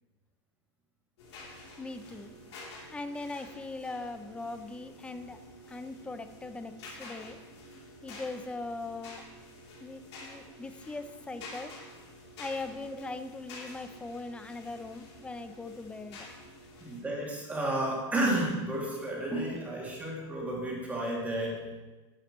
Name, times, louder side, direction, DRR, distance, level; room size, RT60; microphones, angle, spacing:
sound 1, 1.2-17.0, left 2 dB, 80° left, 3.1 m, -49 dB
voice 1, 1.8-2.4 2.9-5.4 5.7-7.4 8.0-9.2 9.8-11.7 12.4-16.3, left 3 dB, 10° left, 10 dB, 0.5 m, -40 dB
voice 2, 16.8-21.6, right 1 dB, 10° right, -4 dB, 2.4 m, -32 dB
11.0 x 10.0 x 3.1 m, 1.2 s
supercardioid pair, 145°, 14 cm